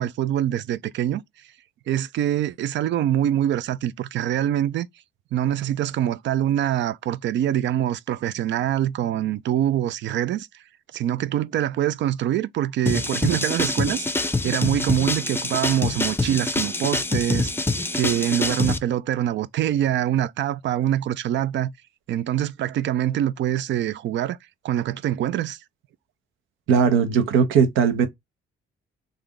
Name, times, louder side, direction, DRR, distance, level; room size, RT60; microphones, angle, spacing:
voice 1, 0.0-1.5 1.9-4.9 5.3-10.6 10.9-21.7 22.1-24.4 24.6-25.6, right 11 dB, 65° right, 0.4 m, -24 dB
sound 1, 12.9-18.8, left 2 dB, 10° left, 0.5 m, -25 dB
voice 2, 26.7-28.1, right 7 dB, 85° right, 0.9 m, -18 dB
3.3 x 2.5 x 3.6 m
cardioid pair, 90°, 20 cm